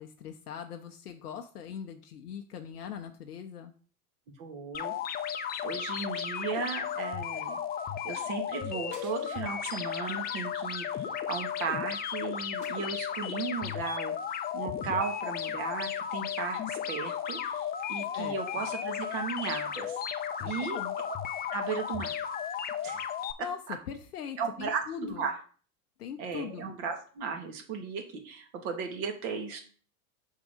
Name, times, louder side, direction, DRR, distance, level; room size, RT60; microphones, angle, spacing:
voice 1, 0.0-3.7 18.1-18.6 20.4-21.0 23.4-23.6 23.9-25.3 26.0-26.6, left 8 dB, 90° left, 6 dB, 0.7 m, -41 dB
voice 2, 4.4-4.9 5.6-7.6 8.0-20.8 21.5-22.2 22.8-23.1 23.7-23.8 24.4-25.4 26.2-29.6, right 5 dB, 60° right, 4 dB, 1.8 m, -36 dB
sound 1, 4.7-23.3, left 8 dB, 20° left, 0.5 m, -34 dB
sound 2, 8.9-9.7 10.1-10.3 10.6-11.6 12.6-13.4, right 3 dB, 45° right, 1.8 m, -55 dB
5.9 x 3.7 x 5.0 m, 0.41 s
hypercardioid pair, 90°, 45 cm